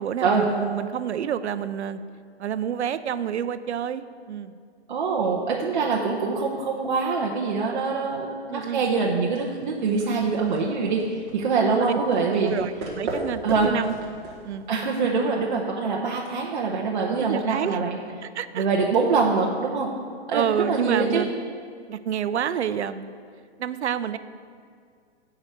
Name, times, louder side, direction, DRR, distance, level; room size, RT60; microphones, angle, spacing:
voice 1, 0.0-2.0 2.4-4.5 8.5-8.8 10.0-10.3 11.8-12.0 12.4-13.9 14.4-14.7 17.2-17.8 18.2-18.7 20.3-21.3 21.9-23.1 23.6-24.2, right 9 dB, 85° right, 13 dB, 0.6 m, -28 dB
voice 2, 4.9-12.5 13.4-13.7 14.7-18.0 18.5-19.9 20.3-21.2, right 4 dB, 45° right, -1 dB, 0.8 m, -24 dB
sound 1, 9.3-15.0, right 2 dB, 20° right, 1.4 m, -37 dB
9.9 x 4.8 x 6.6 m, 2.2 s
hypercardioid pair, 170°, 33 cm